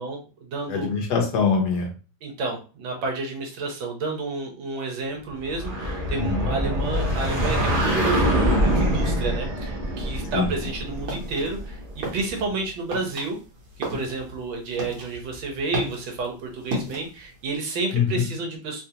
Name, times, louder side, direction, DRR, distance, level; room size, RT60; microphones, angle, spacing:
voice 1, 0.0-0.9 2.2-8.2 8.6-13.4 13.9-18.8, right 3 dB, 80° right, 2 dB, 1.7 m, -30 dB
voice 2, 0.7-1.9 6.1-6.5 10.3-10.5 17.9-18.2, left 5 dB, 65° left, 2 dB, 1.2 m, -23 dB
sound 1, 5.4-12.0, equal, 40° right, 0.8 m, -24 dB
sound 2, 10.6-17.5, right 1 dB, 65° right, 1.6 m, -36 dB
3.7 x 2.4 x 2.8 m, 0.35 s
omnidirectional pair, 2.1 m